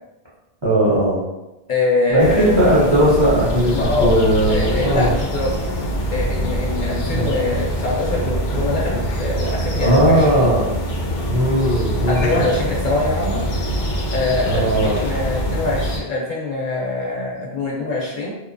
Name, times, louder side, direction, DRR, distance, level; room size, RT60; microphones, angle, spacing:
voice 1, 0.6-1.2 2.1-3.7 4.0-5.1 7.1-7.3 9.8-10.6 11.3-12.4 14.4-15.0, right 1 dB, 35° right, -8 dB, 0.5 m, -17 dB
voice 2, 1.7-2.7 3.7-4.2 4.5-5.7 6.1-10.5 12.1-13.4 14.1-18.3, left 2 dB, 60° left, -3 dB, 0.6 m, -23 dB
sound 1, 2.2-16.0, equal, 90° left, 0.9 m, -24 dB
2.7 x 2.1 x 2.5 m, 0.99 s
omnidirectional pair, 1.0 m